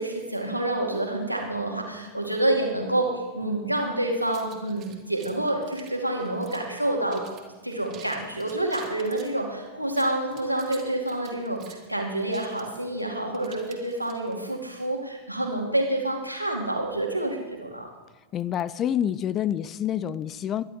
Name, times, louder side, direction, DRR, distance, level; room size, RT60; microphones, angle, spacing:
voice 1, 0.0-7.2 7.6-17.9, right 1 dB, 90° right, 2.5 m, -28 dB
sound 1, 4.3-6.8 7.1-7.4 7.7-9.3 9.8-14.4, right 9 dB, 35° right, 2.4 m, -49 dB
voice 2, 18.3-20.6, left 10 dB, 30° left, 0.5 m, -27 dB
22.5 x 11.0 x 3.6 m
figure-of-eight pair, 90°, 0 cm